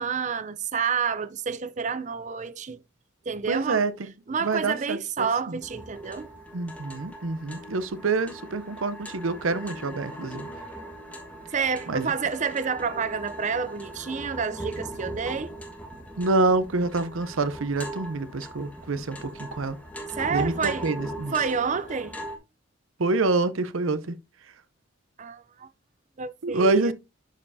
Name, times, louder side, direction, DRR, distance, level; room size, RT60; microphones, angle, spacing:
voice 1, 0.0-2.8 3.3-3.9 4.3-6.3 11.5-15.5 20.1-20.9 21.3-22.2 25.2-25.7 26.2-26.9, right 6 dB, 35° right, 0.5 m, -29 dB
voice 2, 3.5-3.9 4.4-5.6 6.5-10.5 11.9-12.1 16.2-19.8 20.3-21.4 23.0-24.2 26.4-26.9, right 3 dB, 80° right, 0.7 m, -26 dB
sound 1, 5.6-22.4, right 1 dB, 5° left, 1.5 m, -40 dB
11.5 x 5.4 x 2.7 m
head